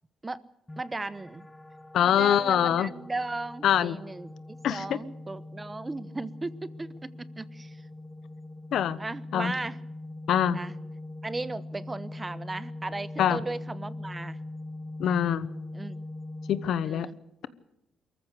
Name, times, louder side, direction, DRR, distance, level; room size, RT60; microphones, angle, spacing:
sound 1, 0.7-16.7, left 2 dB, 10° left, 1.1 m, -42 dB
voice 1, 0.8-1.5 2.0-7.8 9.0-9.8 10.5-10.7 11.2-14.4 15.7-16.0 16.8-17.2, right 2 dB, 20° right, 16 dB, 1.0 m, -36 dB
voice 2, 1.9-2.9 3.6-4.0 4.6-5.0 8.7-9.0 9.3-9.5 10.3-10.6 13.2-13.4 15.0-15.5 16.5-17.1, left 9 dB, 70° left, 16 dB, 1.1 m, -24 dB
23.5 x 14.5 x 8.1 m, 0.86 s
cardioid pair, 90°, 0 cm